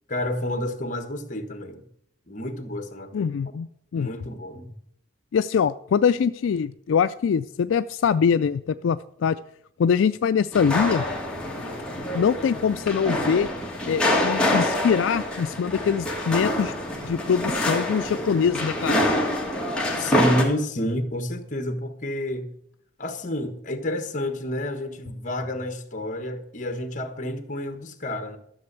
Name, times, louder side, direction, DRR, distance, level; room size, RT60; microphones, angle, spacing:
voice 1, 0.1-1.8 2.3-3.3 4.0-4.7 20.0-22.5 23.0-28.4, left 1 dB, 40° left, 1.3 m, -29 dB
voice 2, 3.1-3.7 3.9-4.1 5.3-9.4 9.8-11.0 12.1-13.5 13.8-16.7 17.0-19.0, left 7 dB, 75° left, 0.3 m, -23 dB
sound 1, 10.5-20.4, left 1 dB, 5° left, 2.0 m, -26 dB
13.0 x 6.9 x 6.8 m
head